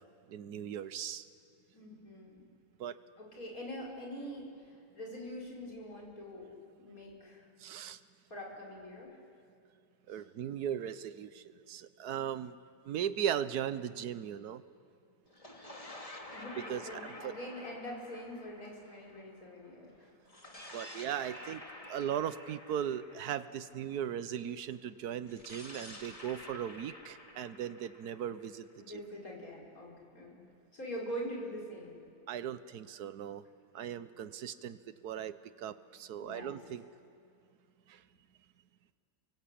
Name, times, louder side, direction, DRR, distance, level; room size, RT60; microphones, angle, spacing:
voice 1, 0.3-1.2 2.8-3.0 7.6-8.0 10.1-12.5 12.9-14.6 16.6-17.3 20.7-21.6 21.9-29.0 32.3-33.4 33.7-34.8 35.0-36.8 37.9-38.0, right 9 dB, 80° right, 14 dB, 1.4 m, -38 dB
voice 2, 1.7-2.4 3.2-6.5 6.8-7.5 8.3-9.2 10.1-10.2 16.3-20.1 28.8-30.4 30.7-32.0 36.2-36.6, equal, 65° left, -3 dB, 5.8 m, -44 dB
sound 1, 15.3-19.7 20.3-24.2 25.2-29.1, left 1 dB, 20° left, 2.2 m, -50 dB
29.5 x 22.5 x 8.6 m, 2.4 s
omnidirectional pair, 1.6 m